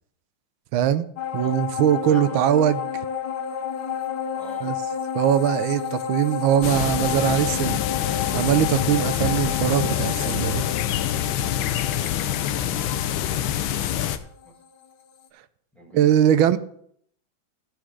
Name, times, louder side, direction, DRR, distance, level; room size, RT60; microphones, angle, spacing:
voice 1, 0.7-1.0 1.3-3.0 4.6-4.7 5.1-7.8 8.3-10.7 15.9-16.6, right 10 dB, 85° right, 1.4 m, -21 dB
sound 1, 1.2-14.9 15.2-15.3, left 8 dB, 60° left, 1.2 m, -31 dB
voice 2, 2.1-2.4 4.3-4.7 11.6-14.5 15.7-16.6, right 1 dB, ahead, 1.8 m, -47 dB
sound 2, 6.6-14.2, left 11 dB, 90° left, 1.4 m, -26 dB
14.5 x 5.0 x 4.7 m
omnidirectional pair, 2.2 m